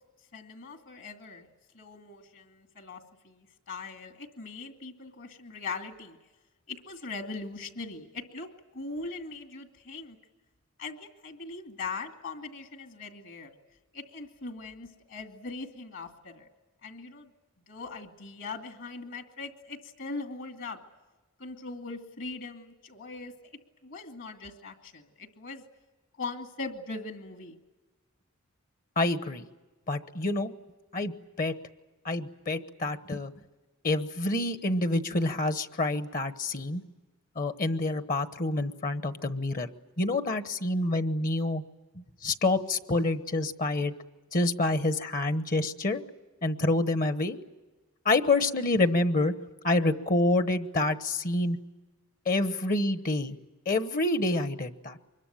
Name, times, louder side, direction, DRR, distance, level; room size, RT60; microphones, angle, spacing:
voice 1, 0.3-1.5 1.7-6.2 6.7-10.2 10.8-13.5 13.9-16.5 16.8-17.3 17.7-20.8 21.4-23.3 23.8-25.6 26.2-27.6, left 3 dB, 60° left, 5 dB, 2.5 m, -40 dB
voice 2, 29.0-29.5 29.9-30.5 30.9-31.5 32.0-33.3 33.8-36.8 37.4-39.7 40.0-41.6 41.9-43.9 44.3-46.0 46.4-47.4 48.0-49.3 49.6-51.6 52.3-53.4 53.7-55.0, left 2 dB, 40° left, 11 dB, 1.1 m, -27 dB
25.0 x 22.0 x 9.1 m, 1.2 s
head